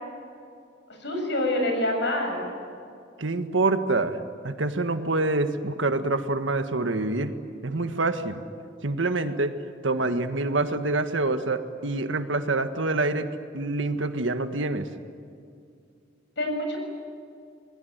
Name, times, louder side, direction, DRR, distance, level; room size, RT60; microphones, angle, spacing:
voice 1, 1.0-2.5 16.4-16.8, left 1 dB, 65° left, 3 dB, 7.1 m, -26 dB
voice 2, 3.2-7.3 7.6-8.4 8.8-9.5 9.8-13.3 13.5-14.9, right 2 dB, 80° right, 8 dB, 1.6 m, -26 dB
28.5 x 21.0 x 9.4 m, 2.4 s
head